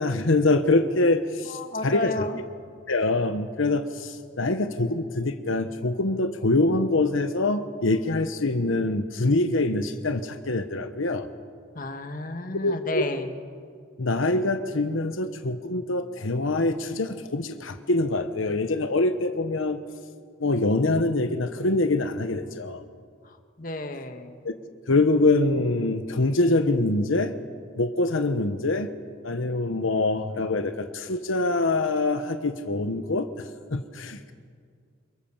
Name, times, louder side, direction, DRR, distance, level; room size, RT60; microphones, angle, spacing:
voice 1, 0.0-2.3 2.9-11.3 12.6-13.1 14.0-19.8 20.4-22.8 24.4-24.5 24.9-27.3 27.8-28.9 29.2-34.3, left 2 dB, 85° left, 8 dB, 1.1 m, -24 dB
voice 2, 1.5-2.4 11.8-13.3 23.6-24.3, left 2 dB, 45° left, 6 dB, 1.7 m, -32 dB
27.5 x 23.5 x 7.3 m, 2.1 s
head